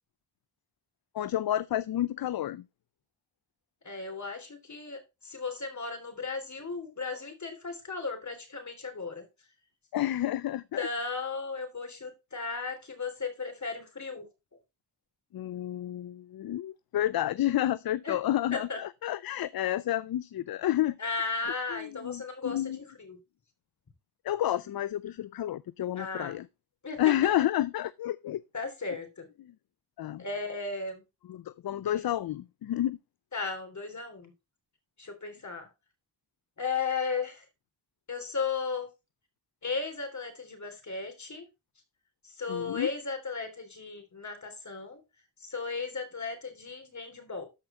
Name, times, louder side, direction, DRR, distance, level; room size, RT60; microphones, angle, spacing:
voice 1, 1.1-2.6 9.9-10.9 15.3-21.0 21.7-22.8 24.2-26.5 27.0-28.4 30.0-30.2 31.3-33.0 42.5-42.9, left 13 dB, 55° left, 0.5 m, -30 dB
voice 2, 3.8-9.2 10.8-14.3 18.0-18.1 18.5-18.8 21.0-23.2 26.0-26.4 26.8-27.0 28.5-29.3 30.2-31.0 31.8-31.9 33.3-34.3 35.0-35.7 36.6-37.4 38.1-38.9 39.6-41.5 42.2-45.0 45.4-47.5, left 4 dB, 40° left, 3.3 m, -35 dB
13.0 x 4.9 x 4.3 m
cardioid pair, 85°, 43 cm